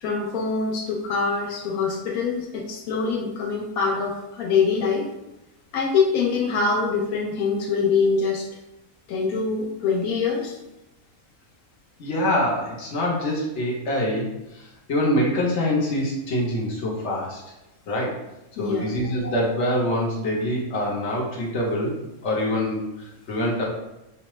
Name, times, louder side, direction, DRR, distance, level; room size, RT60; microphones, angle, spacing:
voice 1, 0.0-5.1 5.7-8.5 9.1-10.5 18.6-18.8, left 5 dB, 90° left, -1 dB, 1.1 m, -24 dB
voice 2, 12.0-14.3 14.5-14.6 14.9-17.4 17.9-18.2 18.6-22.0 22.2-23.6, left 1 dB, 55° left, -3 dB, 1.2 m, -25 dB
5.5 x 2.1 x 3.0 m, 0.92 s
omnidirectional pair, 1.5 m